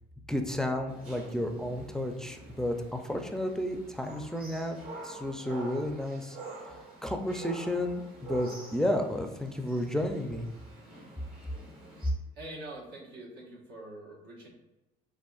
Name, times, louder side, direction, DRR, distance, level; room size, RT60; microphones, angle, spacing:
voice 1, 0.3-4.8 5.0-6.4 7.0-10.5, left 1 dB, 5° left, 4 dB, 0.4 m, -32 dB
sound 1, 0.9-12.1, right 2 dB, 55° right, 1.4 m, -47 dB
voice 2, 12.3-14.5, right 1 dB, 80° right, -2 dB, 1.3 m, -44 dB
7.0 x 2.5 x 2.4 m, 1.0 s
cardioid pair, 110°, 17 cm